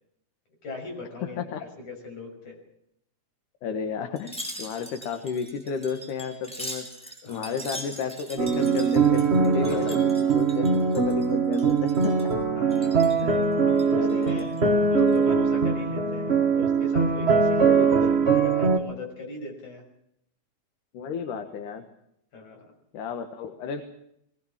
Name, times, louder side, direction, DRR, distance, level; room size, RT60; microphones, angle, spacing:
voice 1, 0.6-1.5 1.8-2.6 7.2-7.6 9.6-9.9 12.6-13.1 13.7-14.5 14.9-17.8 18.1-19.8 22.3-22.7, left 2 dB, 70° left, 2 dB, 7.7 m, -38 dB
voice 2, 3.6-12.3 13.2-13.5 13.9-14.7 17.6-18.2 20.9-21.8 22.9-23.8, left 6 dB, 85° left, 7 dB, 3.0 m, -33 dB
Wind chime, 4.2-11.3 11.5-12.3 12.7-13.2 13.7-14.6 15.0-15.2, equal, ahead, 5.3 m, -41 dB
sound 1, 8.4-18.8, right 5 dB, 80° right, 0.5 m, -22 dB
20.5 x 20.0 x 7.4 m, 0.73 s
omnidirectional pair, 3.5 m